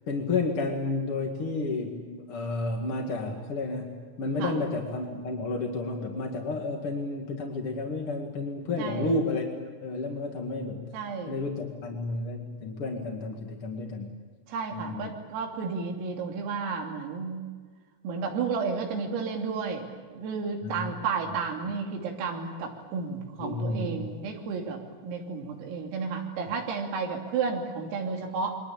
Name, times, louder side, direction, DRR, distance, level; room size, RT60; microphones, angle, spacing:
voice 1, 0.1-10.8 11.3-14.1 14.7-15.1 20.6-20.9 23.4-24.1, left 3 dB, 50° left, 2 dB, 1.7 m, -31 dB
voice 2, 8.8-9.2 10.9-11.3 14.5-17.5 18.0-28.6, right 5 dB, 85° right, 2 dB, 5.6 m, -32 dB
28.5 x 23.0 x 8.7 m, 1.5 s
omnidirectional pair, 5.9 m